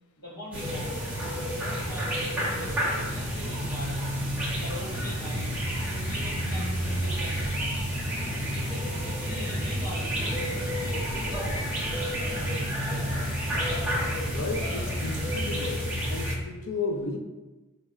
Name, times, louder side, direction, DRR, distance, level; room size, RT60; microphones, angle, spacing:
voice 1, 0.2-1.2 1.6-4.1 4.6-7.8 8.4-12.0, equal, 65° left, -10 dB, 1.0 m, -42 dB
sound 1, 0.5-16.3, equal, 5° right, 0.7 m, -30 dB
voice 2, 14.3-15.8 16.1-17.2, left 3 dB, 80° left, 4 dB, 0.5 m, -33 dB
4.1 x 2.8 x 2.4 m, 1.1 s
head